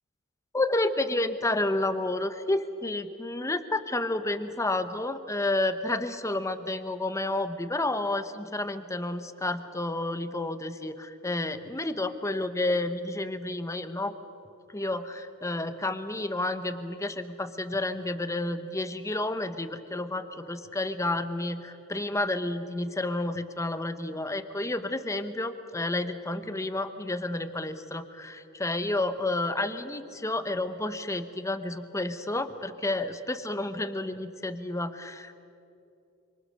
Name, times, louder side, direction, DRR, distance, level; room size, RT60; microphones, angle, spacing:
voice 1, 0.5-14.1 14.7-35.4, left 2 dB, 15° left, 10 dB, 1.0 m, -30 dB
27.0 x 25.5 x 6.6 m, 2.7 s
head